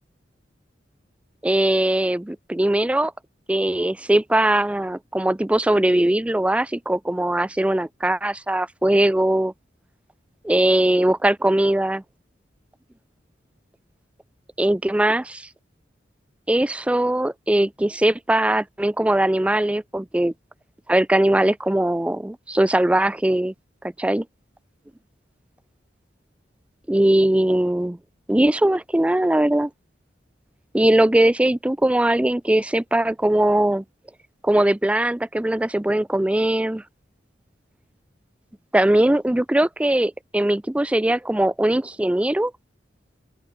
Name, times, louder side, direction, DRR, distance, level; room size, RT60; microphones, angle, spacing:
voice 1, 1.4-3.1 3.5-9.5 10.4-12.0 14.6-15.5 16.5-20.3 20.9-23.5 24.0-24.3 26.9-28.0 28.3-29.7 30.7-33.8 34.4-36.8 38.7-42.5, right 1 dB, 5° right, 0.3 m, -20 dB
open air
head